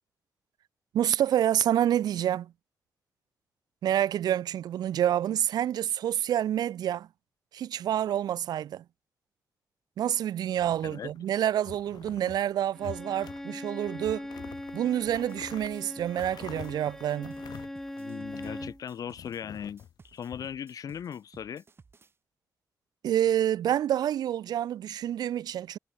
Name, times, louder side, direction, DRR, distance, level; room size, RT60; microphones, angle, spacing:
voice 1, 0.9-2.5 3.8-7.1 7.5-8.8 10.0-14.3 14.7-17.4 23.0-25.8, right 11 dB, 80° right, 0.4 m, -28 dB
sound 1, 10.5-11.3 11.7-12.4 12.8-13.5 13.8-18.8 19.2-20.4, left 10 dB, 85° left, 5.1 m, -47 dB
Bowed string instrument, 12.7-18.8, left 1 dB, 5° left, 0.9 m, -41 dB
sound 2, 15.1-22.1, right 4 dB, 35° right, 5.0 m, -57 dB
voice 2, 18.0-21.6, left 8 dB, 60° left, 0.9 m, -39 dB
wide cardioid pair, 125°, 7 cm